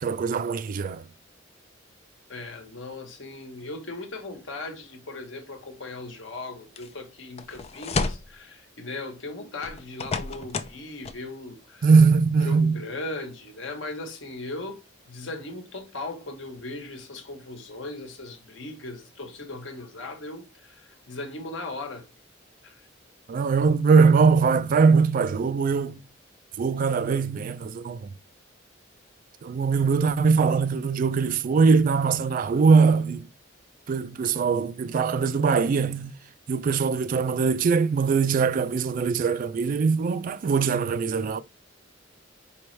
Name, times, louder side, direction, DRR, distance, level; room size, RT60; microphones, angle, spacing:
voice 1, 0.0-1.0 11.8-12.8 23.3-26.0 26.6-28.1 29.4-33.3 33.9-36.1 36.5-41.4, right 5 dB, 45° right, 0.3 m, -21 dB
voice 2, 2.3-11.9 12.4-14.8 15.1-22.1 22.6-22.9, left 2 dB, 90° left, 1.1 m, -38 dB
sound 1, 6.8-6.9 7.4-8.3 9.6-10.8 11.0-11.2, left 4 dB, 35° left, 0.4 m, -31 dB
4.8 x 3.0 x 3.2 m
head